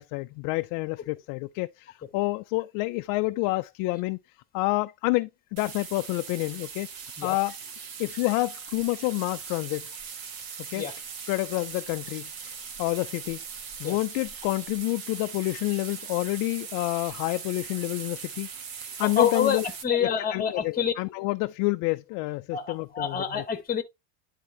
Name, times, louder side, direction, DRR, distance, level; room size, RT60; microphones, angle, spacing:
voice 1, 0.0-4.2 4.5-6.9 7.2-7.5 8.0-9.9 10.7-10.8 11.3-12.5 12.8-13.4 13.8-18.5 19.0-19.6 20.0-23.2, left 22 dB, 50° left, 0.4 m, -28 dB
sound 1, 5.6-19.8, right 6 dB, 50° right, 1.6 m, -40 dB
voice 2, 19.0-20.9 22.5-23.8, left 7 dB, 20° left, 1.3 m, -27 dB
10.5 x 3.7 x 3.0 m
cardioid pair, 155°, 46 cm